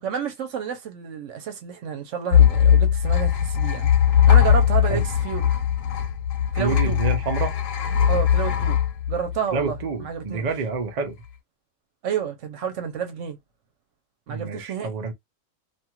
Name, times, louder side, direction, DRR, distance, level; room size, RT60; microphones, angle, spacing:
voice 1, 0.0-5.5 6.5-7.0 8.1-8.8 9.1-10.5 12.0-13.4 14.3-14.9, right 7 dB, 70° right, 1.0 m, -30 dB
sound 1, 2.3-9.8, left 9 dB, 90° left, 1.0 m, -19 dB
voice 2, 6.5-7.5 9.5-11.2 14.3-15.1, right 4 dB, 50° right, 0.5 m, -28 dB
2.6 x 2.4 x 2.8 m
omnidirectional pair, 1.3 m